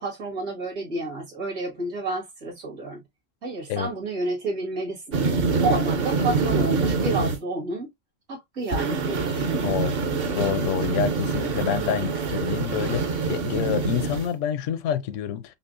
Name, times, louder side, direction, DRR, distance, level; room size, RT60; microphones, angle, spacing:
voice 1, 0.0-3.0 3.4-5.2 5.6-7.9 8.3-9.7, right 2 dB, 75° right, 2.2 m, -30 dB
sound 1, 5.1-7.4 8.7-14.3, right 4 dB, 55° right, 0.8 m, -25 dB
voice 2, 9.6-10.0 10.3-15.6, left 9 dB, 75° left, 0.9 m, -27 dB
5.5 x 2.1 x 2.5 m
omnidirectional pair, 1.3 m